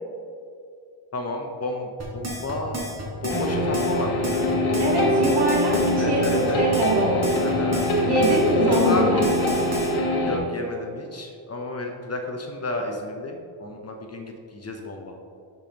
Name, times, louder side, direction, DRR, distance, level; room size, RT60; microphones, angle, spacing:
voice 1, 1.1-2.8 3.2-4.5 6.0-6.6 7.4-7.9 8.3-8.4 8.7-9.1 10.2-15.2, left 2 dB, 35° left, 2 dB, 0.7 m, -31 dB
sound 1, 2.0-9.9, right 1 dB, 35° right, 1.5 m, -32 dB
sound 2, 3.3-10.4, left 1 dB, 90° left, 1.5 m, -23 dB
voice 2, 4.8-7.4 8.0-9.8, right 1 dB, 55° right, -3 dB, 1.9 m, -23 dB
11.5 x 5.3 x 2.9 m, 2.4 s
wide cardioid pair, 165°, 47 cm